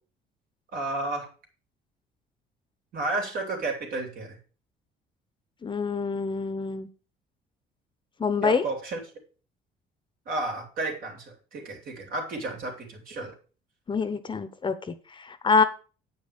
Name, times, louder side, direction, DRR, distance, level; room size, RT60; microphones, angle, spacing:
voice 1, 0.7-1.3 2.9-4.4 8.4-9.0 10.3-13.3, right 2 dB, 60° right, 2 dB, 3.6 m, -32 dB
voice 2, 5.6-6.9 8.2-8.6 13.9-15.6, left 5 dB, 30° left, 11 dB, 0.9 m, -26 dB
8.5 x 5.5 x 6.6 m, 0.37 s
cardioid pair, 110°, 17 cm